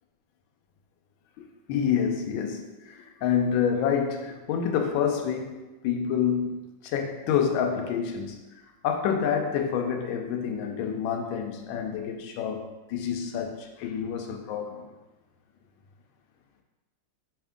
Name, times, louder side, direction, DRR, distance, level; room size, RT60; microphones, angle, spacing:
voice 1, 1.7-14.8, left 7 dB, 75° left, 4 dB, 1.3 m, -28 dB
4.4 x 3.4 x 3.5 m, 1.1 s
omnidirectional pair, 2.3 m